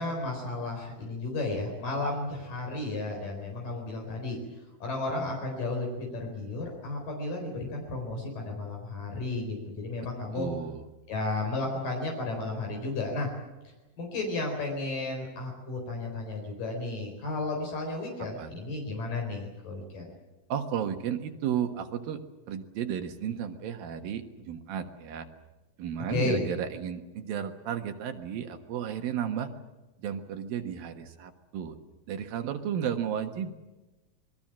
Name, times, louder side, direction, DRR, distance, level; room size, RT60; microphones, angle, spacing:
voice 1, 0.0-4.4 4.8-10.5 11.1-13.3 14.0-20.1 26.1-26.4, left 2 dB, 70° left, 1 dB, 5.8 m, -33 dB
voice 2, 10.3-10.8 18.4-18.5 20.5-22.2 22.5-25.3 25.8-29.5 30.0-31.8 32.1-33.5, right 8 dB, 80° right, 6 dB, 3.3 m, -33 dB
27.0 x 21.0 x 7.5 m, 1.1 s
omnidirectional pair, 4.1 m